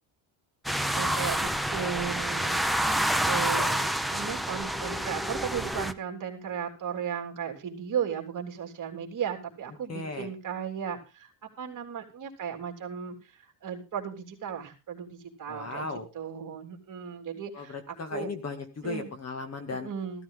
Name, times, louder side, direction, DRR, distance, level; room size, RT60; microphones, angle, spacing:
sound 1, 0.6-5.9, right 1 dB, ahead, 0.6 m, -28 dB
voice 1, 0.9-2.9 3.3-15.9 16.1-18.3 18.8-19.1 19.7-20.2, right 8 dB, 40° right, 3 dB, 3.3 m, -36 dB
voice 2, 9.9-10.3 15.5-16.1 17.5-19.9, left 3 dB, 35° left, 7 dB, 2.2 m, -36 dB
15.0 x 13.5 x 3.8 m, 0.31 s
cardioid pair, 140°, 46 cm